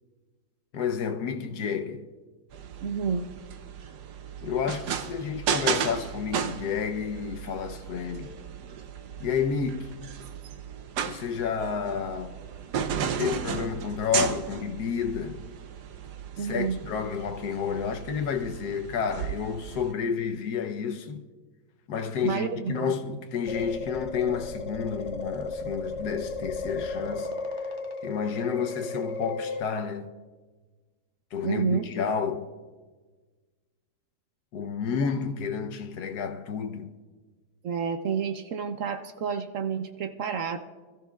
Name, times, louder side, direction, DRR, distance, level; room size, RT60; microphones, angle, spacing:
voice 1, 0.7-2.1 4.4-8.4 9.2-9.9 11.0-12.4 13.2-15.5 16.4-21.2 21.9-27.3 28.0-30.1 31.3-32.5 34.5-36.9, left 6 dB, 70° left, 1.3 m, -30 dB
sound 1, 2.5-19.9, right 7 dB, 75° right, 1.2 m, -35 dB
voice 2, 2.8-3.3 16.4-16.8 22.2-22.9 31.4-31.8 37.6-40.6, right 6 dB, 60° right, 0.9 m, -29 dB
sound 2, 23.5-29.6, left 3 dB, 50° left, 1.0 m, -34 dB
25.5 x 14.0 x 2.4 m
omnidirectional pair, 1.9 m